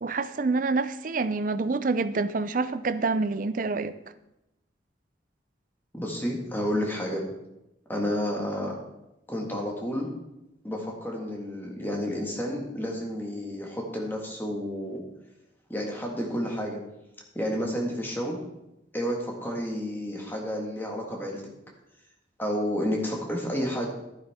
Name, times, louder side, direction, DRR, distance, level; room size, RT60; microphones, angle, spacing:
voice 1, 0.0-3.9, right 3 dB, 45° right, 13 dB, 0.5 m, -27 dB
voice 2, 5.9-7.2 7.9-8.8 9.3-10.1 10.6-15.0 15.7-16.8 17.3-18.4 18.9-21.4 22.4-23.9, equal, 10° left, -1 dB, 1.8 m, -30 dB
12.0 x 10.0 x 3.6 m, 0.90 s
head